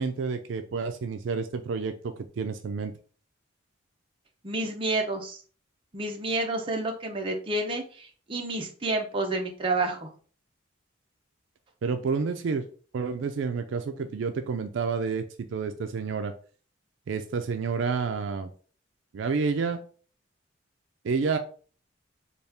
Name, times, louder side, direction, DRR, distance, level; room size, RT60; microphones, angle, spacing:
voice 1, 0.0-2.9 11.8-12.6 12.9-16.3 17.1-18.5 19.1-19.8 21.0-21.4, right 5 dB, 70° right, 7 dB, 0.4 m, -29 dB
voice 2, 4.4-5.4 5.9-10.1, right 2 dB, 25° right, 2 dB, 0.6 m, -29 dB
4.1 x 2.4 x 3.4 m, 0.41 s
head